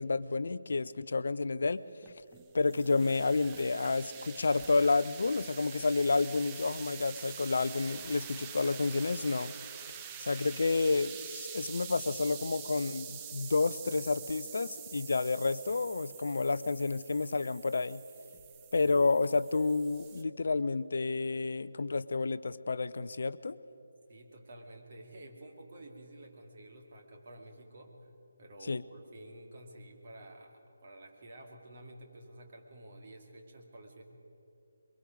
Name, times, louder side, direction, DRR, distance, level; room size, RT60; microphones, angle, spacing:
voice 1, 0.0-1.8 2.5-9.5 10.2-18.0 18.7-23.6 28.7-28.8, left 3 dB, 50° left, 16 dB, 0.5 m, -30 dB
sound 1, 2.0-20.2, right 8 dB, 15° right, 0.6 m, -46 dB
voice 2, 24.1-28.1 28.4-34.0, right 1 dB, 35° right, 1 dB, 2.3 m, -51 dB
23.0 x 23.0 x 5.1 m, 2.7 s
figure-of-eight pair, 150°, 0 cm